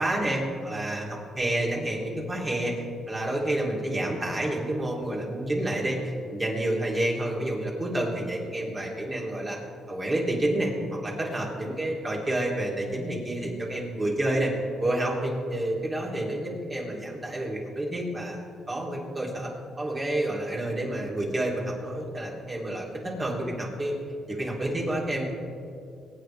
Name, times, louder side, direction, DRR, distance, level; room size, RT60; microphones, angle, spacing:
voice 1, 0.0-2.7 3.1-9.6 9.9-10.7 11.0-14.5 14.8-19.5 19.8-24.0 24.3-25.2, right 1 dB, 25° right, -3 dB, 3.4 m, -29 dB
22.0 x 9.4 x 3.5 m, 2.4 s
cardioid pair, 90°, 0 cm